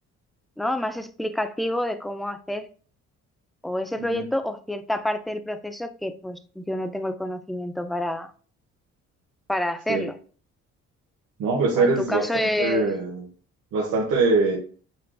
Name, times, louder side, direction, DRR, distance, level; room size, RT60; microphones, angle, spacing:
voice 1, 0.6-2.7 3.6-8.3 9.5-10.1 11.8-12.9, left 1 dB, ahead, 0.4 m, -28 dB
voice 2, 11.4-13.3 13.7-14.6, right 3 dB, 80° right, 1.1 m, -23 dB
6.7 x 2.4 x 2.3 m
cardioid pair, 90°, 30 cm